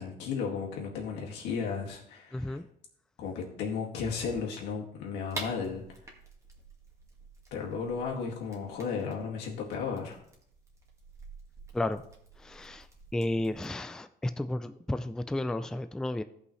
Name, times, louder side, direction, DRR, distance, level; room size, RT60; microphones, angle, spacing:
voice 1, 0.0-2.6 3.2-6.0 7.5-10.2, left 5 dB, 85° left, -1 dB, 2.1 m, -34 dB
voice 2, 2.3-2.7 11.7-12.0 12.4-12.9 13.1-16.2, left 1 dB, 5° left, 10 dB, 0.3 m, -32 dB
sound 1, 5.3-13.7, right 2 dB, 15° right, 1.8 m, -48 dB
14.5 x 5.5 x 3.2 m, 0.69 s
cardioid pair, 110°, 17 cm